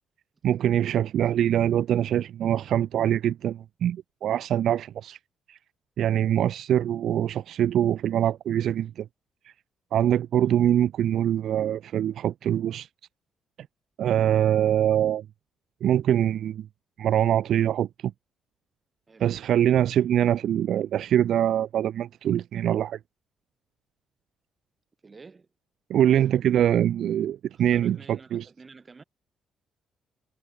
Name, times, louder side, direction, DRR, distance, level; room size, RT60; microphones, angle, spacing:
voice 1, 0.4-5.2 5.5-5.6 6.0-9.1 9.9-12.9 14.0-15.2 15.8-16.7 17.0-18.1 19.2-23.0 25.9-28.4, right 10 dB, 70° right, 0.8 m, -24 dB
voice 2, 25.0-25.5 27.5-29.0, right 4 dB, 30° right, 4.7 m, -49 dB
cardioid pair, 90°, 0 cm